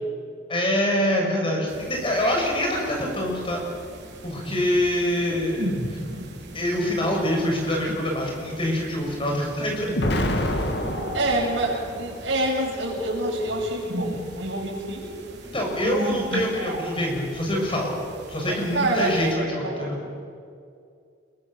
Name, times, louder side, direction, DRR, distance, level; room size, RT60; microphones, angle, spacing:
voice 1, 0.5-3.6 4.2-6.0 6.5-9.9 15.5-17.9 18.3-20.0, left 1 dB, 30° left, 0 dB, 6.6 m, -25 dB
sound 1, 1.7-19.3, equal, 60° right, 4.8 m, -37 dB
Explosion, 10.0-12.1, left 1 dB, 60° left, 2.6 m, -26 dB
voice 2, 11.1-15.2 18.7-20.0, right 2 dB, 85° right, -1 dB, 7.7 m, -27 dB
27.0 x 23.0 x 7.6 m, 2.3 s
head